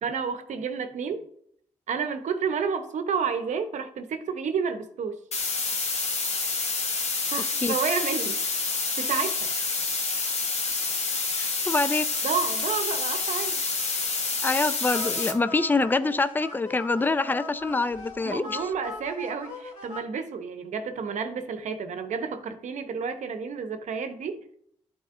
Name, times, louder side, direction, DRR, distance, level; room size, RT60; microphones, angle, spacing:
voice 1, 0.0-1.2 1.9-5.2 7.3-8.4 9.0-9.5 12.2-13.6 18.2-24.4, right 6 dB, 70° right, 8 dB, 0.8 m, -30 dB
sound 1, 5.3-15.3, left 4 dB, 60° left, 1.3 m, -28 dB
voice 2, 11.4-12.1 14.4-18.6, left 3 dB, 15° left, 14 dB, 0.4 m, -25 dB
sound 2, 14.9-20.0, left 3 dB, 80° left, 2.5 m, -40 dB
11.0 x 4.2 x 2.5 m, 0.68 s
supercardioid pair, 50°, 13 cm